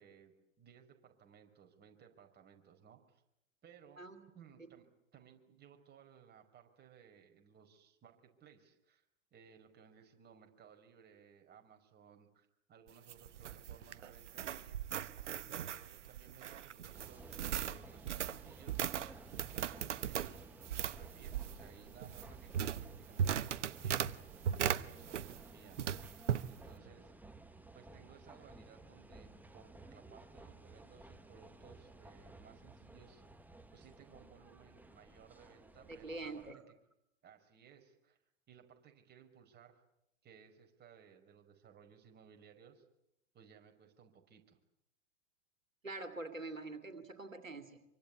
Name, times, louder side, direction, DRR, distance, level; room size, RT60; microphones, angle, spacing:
voice 1, 0.0-3.2 3.6-4.0 4.3-4.9 5.1-9.0 9.3-14.8 15.4-18.9 19.4-25.9 26.4-27.2 27.7-33.2 33.7-36.7 37.2-38.2 38.5-39.8 40.2-42.8 43.3-44.6, right 7 dB, 25° right, 4 dB, 5.3 m, -61 dB
sound 1, 12.9-25.5 25.8-26.5, right 9 dB, 65° right, 1.2 m, -38 dB
sound 2, 16.9-36.5, right 2 dB, 5° right, 1.6 m, -56 dB
voice 2, 35.9-36.6 45.8-47.8, right 2 dB, 90° right, 6 dB, 2.6 m, -45 dB
26.5 x 24.5 x 8.5 m, 0.81 s
figure-of-eight pair, 95°, 38 cm